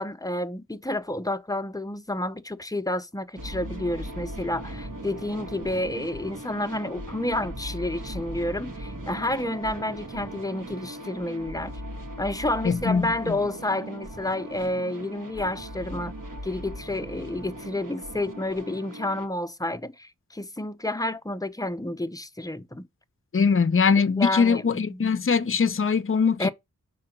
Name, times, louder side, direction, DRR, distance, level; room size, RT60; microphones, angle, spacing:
voice 1, 0.0-11.7 12.2-16.1 16.4-22.8 24.0-25.1 26.4-26.5, left 1 dB, 10° left, 0.8 m, -30 dB
sound 1, 3.4-19.3, right 1 dB, 75° right, 2.1 m, -38 dB
voice 2, 12.6-13.4 23.3-26.5, left 5 dB, 40° left, 0.7 m, -22 dB
5.6 x 3.9 x 5.9 m
cardioid pair, 40°, 32 cm